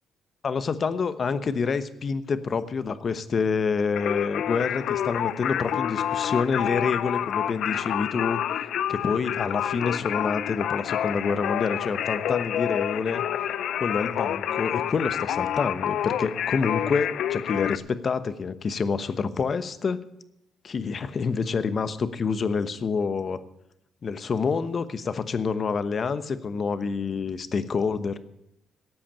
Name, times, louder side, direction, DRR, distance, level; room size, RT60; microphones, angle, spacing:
voice 1, 0.4-8.4 8.9-13.2 13.8-20.0 20.6-23.4 24.0-28.2, left 5 dB, 45° left, 13 dB, 1.0 m, -27 dB
Singing, 4.0-17.8, left 10 dB, 75° left, 0.5 m, -28 dB
13.0 x 8.5 x 8.8 m, 0.81 s
cardioid pair, 90°, 0 cm